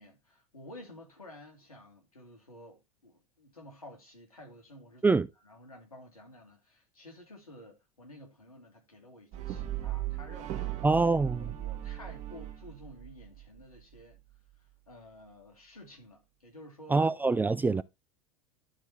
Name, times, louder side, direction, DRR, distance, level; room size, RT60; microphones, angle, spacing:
voice 1, 0.0-10.9 11.4-14.2 14.9-17.1, left 1 dB, 85° left, 2.6 m, -52 dB
Brass instrument, 9.3-13.6, right 14 dB, 40° right, 1.7 m, -37 dB
voice 2, 10.8-11.4 16.9-17.8, right 3 dB, 10° right, 0.4 m, -25 dB
12.0 x 4.5 x 3.2 m
figure-of-eight pair, 80°, 18 cm